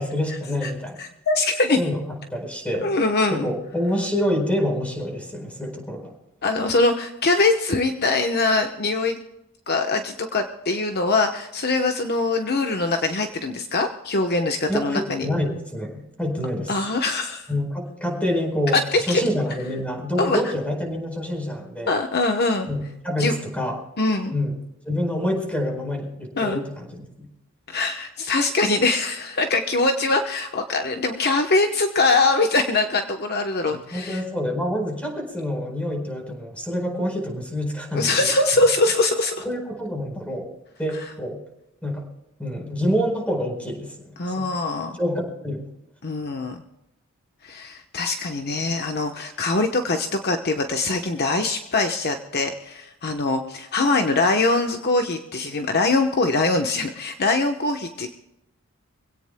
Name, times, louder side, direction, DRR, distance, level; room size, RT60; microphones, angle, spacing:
voice 1, 0.0-1.0 1.8-2.0 2.3-2.9 3.3-6.1 14.7-16.7 17.5-21.9 22.7-23.8 24.3-24.6 24.8-27.3 33.7-38.1 39.4-40.5 40.8-41.4 41.8-42.0 42.4-44.5 45.0-45.7, equal, 5° left, 3 dB, 4.5 m, -27 dB
voice 2, 1.0-1.8 2.8-3.4 6.4-9.2 9.7-15.3 16.7-17.5 18.7-19.2 20.2-20.5 21.9-22.7 23.2-23.4 24.0-24.3 26.4-26.6 27.7-34.2 37.9-39.4 40.9-41.1 44.2-45.0 46.0-46.6 47.4-58.1, left 3 dB, 45° left, 5 dB, 1.0 m, -22 dB
25.0 x 17.0 x 2.3 m, 0.87 s
head